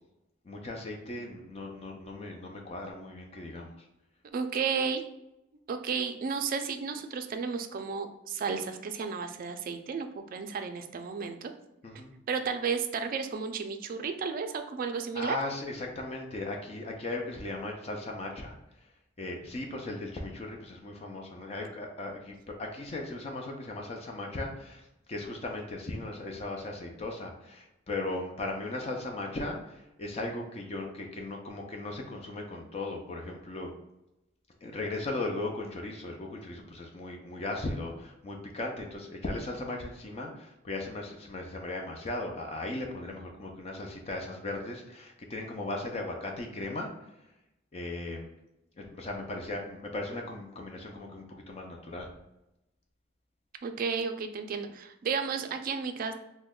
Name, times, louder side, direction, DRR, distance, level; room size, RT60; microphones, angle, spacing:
voice 1, 0.4-3.9 11.8-12.1 15.1-18.9 19.2-24.8 25.1-33.7 34.6-47.1 47.7-48.3 48.8-52.1, left 2 dB, 35° left, 1 dB, 0.4 m, -37 dB
voice 2, 4.3-5.1 5.7-11.5 12.3-15.4 53.6-56.1, right 5 dB, 50° right, 7 dB, 0.3 m, -33 dB
3.0 x 2.1 x 3.6 m, 0.90 s
head